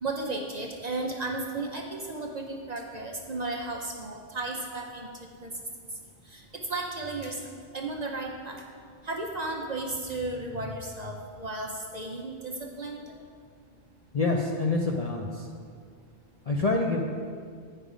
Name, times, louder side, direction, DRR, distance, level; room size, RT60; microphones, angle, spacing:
voice 1, 0.0-5.1 5.4-5.5 6.3-6.4 6.7-7.4 7.7-8.6 9.0-13.0, right 2 dB, 45° right, 1 dB, 0.6 m, -34 dB
voice 2, 14.1-15.3 16.5-17.0, left 3 dB, 50° left, 0 dB, 0.5 m, -26 dB
8.5 x 5.5 x 5.0 m, 2.1 s
omnidirectional pair, 1.2 m